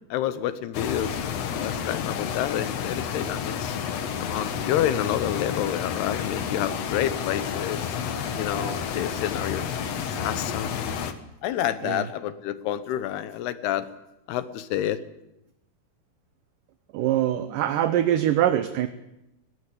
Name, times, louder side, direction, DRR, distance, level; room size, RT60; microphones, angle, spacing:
voice 1, 0.1-3.8 4.2-8.0 8.3-10.9 11.4-13.9 14.3-15.0, left 11 dB, 85° left, 13 dB, 3.2 m, -29 dB
sound 1, 0.7-11.1, left 7 dB, 60° left, 1.8 m, -30 dB
Wind, 2.5-11.0, right 3 dB, 20° left, 5.0 m, -48 dB
voice 2, 16.9-18.9, right 11 dB, 75° right, 9 dB, 2.1 m, -23 dB
19.5 x 19.0 x 8.6 m, 0.88 s
omnidirectional pair, 4.6 m